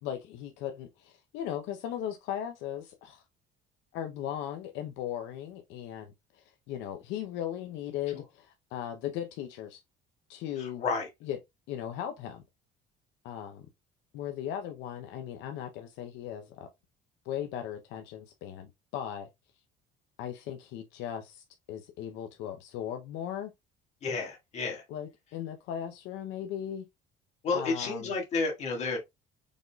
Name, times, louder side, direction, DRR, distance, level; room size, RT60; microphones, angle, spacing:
voice 1, 0.0-3.2 3.9-9.8 10.3-10.8 11.2-11.4 11.7-12.4 13.2-13.6 14.1-16.7 17.2-19.3 20.2-23.5 24.9-26.8 27.5-28.1, left 10 dB, 75° left, 0.7 m, -37 dB
voice 2, 10.6-11.1 24.0-24.8 27.4-29.0, left 4 dB, 35° left, 1.8 m, -31 dB
5.1 x 3.9 x 2.3 m
cardioid pair, 170°, 19 cm